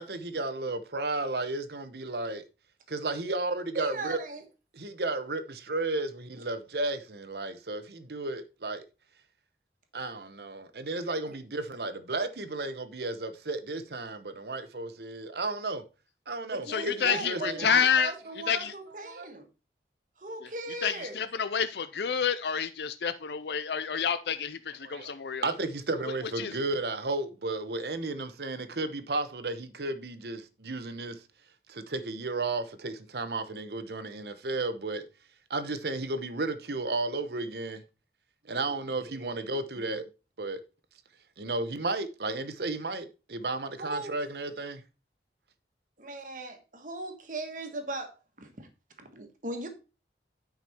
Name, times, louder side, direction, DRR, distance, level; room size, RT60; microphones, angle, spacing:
voice 1, 0.0-2.4 2.9-4.2 4.7-8.8 9.9-15.8 16.3-17.7 19.1-19.3 24.8-25.1 25.4-31.2 31.7-35.0 35.5-37.8 38.5-40.1 40.4-40.6 41.4-44.8, right 2 dB, 65° right, 0.9 m, -33 dB
voice 2, 3.7-4.4 11.3-11.4 16.5-19.5 20.2-21.2 43.8-44.1 46.0-48.7 49.0-49.7, right 2 dB, 45° right, 1.5 m, -38 dB
voice 3, 16.7-18.1 18.5-18.7 20.4-20.5 20.8-25.5 26.4-26.6, left 7 dB, 70° left, 0.5 m, -29 dB
9.3 x 5.2 x 4.4 m
head